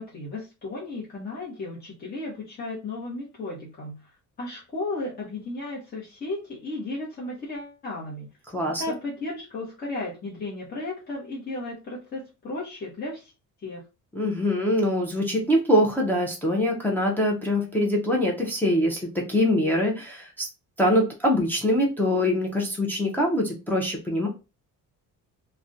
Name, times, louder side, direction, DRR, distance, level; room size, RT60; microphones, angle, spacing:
voice 1, 0.0-4.1 4.4-8.3 8.8-13.3 13.6-13.8, left 2 dB, 30° left, -5 dB, 0.7 m, -34 dB
voice 2, 8.5-8.9 14.1-20.5 20.8-24.3, left 1 dB, 5° left, -2 dB, 0.4 m, -23 dB
2.3 x 2.1 x 2.5 m, 0.29 s
cardioid pair, 160°, 32 cm